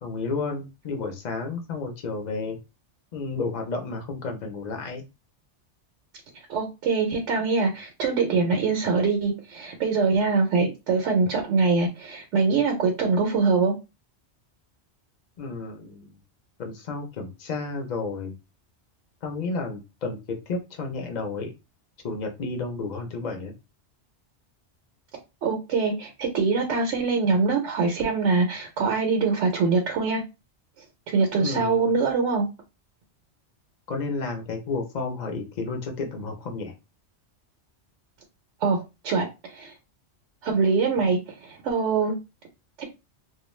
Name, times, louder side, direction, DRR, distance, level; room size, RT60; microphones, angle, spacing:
voice 1, 0.0-2.6 3.1-5.0 15.4-16.2 16.6-18.4 19.2-20.2 20.5-21.5 22.0-23.5 31.4-31.9 33.9-36.7, left 3 dB, 45° left, 0.7 m, -31 dB
voice 2, 6.5-13.7 25.4-30.2 31.1-32.4 38.6-39.7 40.4-42.1 42.8-42.9, right 4 dB, 85° right, 1.0 m, -23 dB
2.4 x 2.2 x 3.1 m
omnidirectional pair, 1.2 m